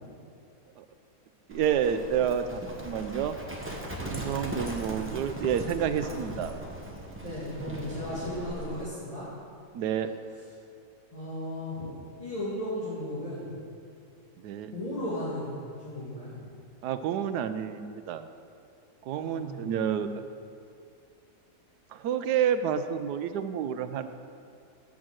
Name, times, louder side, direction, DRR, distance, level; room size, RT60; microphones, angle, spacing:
Livestock farm animals working animals, 1.5-8.9, right 1 dB, 10° right, 0.8 m, -38 dB
voice 1, 1.5-3.3 4.0-6.5 9.7-10.1 14.4-14.7 16.8-18.2 19.0-20.1 21.9-24.1, right 8 dB, 90° right, 10 dB, 1.2 m, -29 dB
voice 2, 7.2-9.3 11.1-11.9 12.2-13.6 14.7-16.3 19.1-19.6, left 1 dB, 20° left, -11 dB, 2.2 m, -35 dB
9.2 x 6.0 x 7.6 m, 2.4 s
omnidirectional pair, 1.7 m